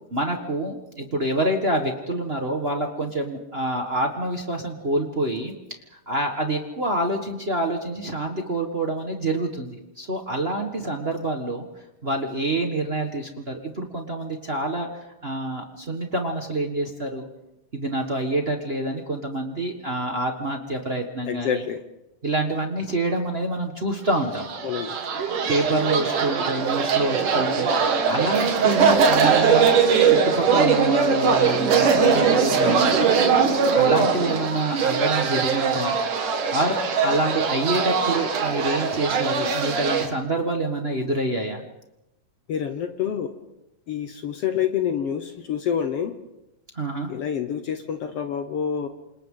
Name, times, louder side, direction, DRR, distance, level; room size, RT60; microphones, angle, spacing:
voice 1, 0.1-5.5 6.1-11.7 12.0-14.9 15.2-17.2 17.7-21.6 22.2-24.5 25.5-29.8 30.1-33.0 33.7-35.9 36.5-41.6 46.7-47.1, right 1 dB, 55° right, 2 dB, 0.6 m, -27 dB
voice 2, 21.3-21.8 24.6-25.0 42.5-43.3 43.9-46.2 47.1-48.9, left 8 dB, 70° left, 7 dB, 1.5 m, -27 dB
sound 1, 24.2-40.1, right 5 dB, 70° right, 3.5 m, -21 dB
28.5 x 27.0 x 3.8 m, 0.93 s
omnidirectional pair, 3.9 m